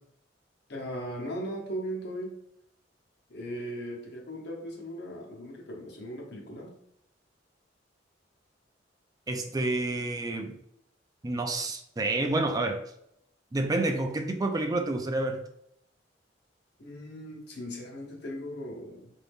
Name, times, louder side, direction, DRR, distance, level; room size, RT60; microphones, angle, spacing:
voice 1, 0.7-2.4 3.3-6.7 16.8-19.1, equal, 65° left, -1 dB, 1.0 m, -38 dB
voice 2, 9.3-10.6 11.2-12.8 13.5-15.5, right 2 dB, 20° right, 4 dB, 0.4 m, -29 dB
4.0 x 2.7 x 3.4 m, 0.73 s
head